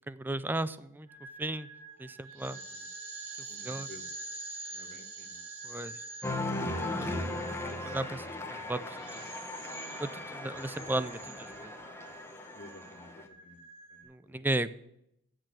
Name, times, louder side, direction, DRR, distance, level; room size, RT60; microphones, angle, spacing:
voice 1, 0.1-1.1 1.4-1.7 2.0-2.6 3.6-3.9 5.6-6.0 7.0-7.1 7.7-9.2 10.0-11.7 14.1-14.7, right 2 dB, 10° right, 15 dB, 0.3 m, -35 dB
sound 1, 1.1-14.0, right 3 dB, 75° right, 3.1 m, -46 dB
voice 2, 2.4-2.9 3.5-4.1 4.7-5.4 10.1-10.2 12.5-13.6 13.9-14.4, left 2 dB, 45° left, 6 dB, 1.3 m, -53 dB
Cheering, 6.2-13.3, left 2 dB, 10° left, 0.9 m, -38 dB
8.9 x 6.2 x 8.1 m, 0.79 s
head